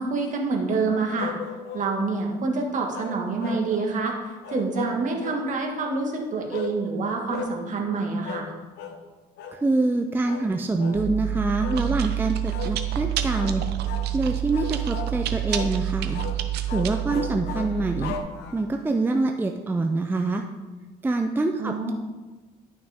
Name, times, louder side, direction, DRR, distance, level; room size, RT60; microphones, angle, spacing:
voice 1, 0.0-1.3 1.7-4.1 4.5-8.5 21.6-21.9, right 4 dB, 50° right, 0 dB, 1.8 m, -27 dB
sound 1, 1.2-1.9 2.9-3.9 4.4-5.5 6.5-6.8 7.3-7.6 8.2-8.5 8.8-9.0 9.4-9.6 10.3-10.5 10.8-11.0 11.6-11.9 12.5-12.8 13.3-13.5 13.9-14.1 14.5-15.2 15.5-15.8 16.1-16.4 16.7-18.8, left 7 dB, 85° left, 0.8 m, -36 dB
voice 2, 9.5-13.6 14.1-16.2 16.7-18.2 18.5-20.4 21.0-21.9, right 2 dB, 10° right, 4 dB, 0.5 m, -25 dB
Chewing mastication, 10.9-18.2, right 12 dB, 75° right, 0.8 m, -28 dB
11.0 x 6.2 x 3.6 m, 1.3 s
cardioid pair, 110°, 17 cm